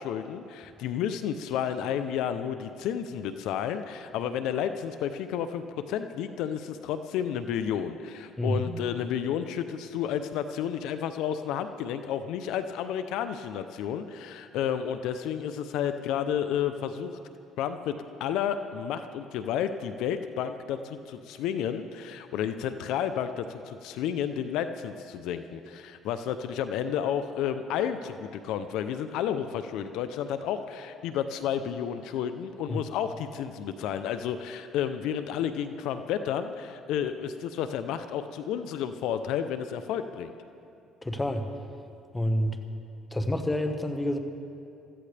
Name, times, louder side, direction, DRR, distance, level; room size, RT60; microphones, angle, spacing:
voice 1, 0.0-17.2 17.6-40.3, left 9 dB, 80° left, 10 dB, 0.6 m, -31 dB
voice 2, 8.4-8.8 32.7-32.8 41.0-41.5 42.1-42.6 43.1-44.2, left 1 dB, 15° left, 6 dB, 1.4 m, -28 dB
23.5 x 14.5 x 3.4 m, 2.6 s
supercardioid pair, 80°, 0 cm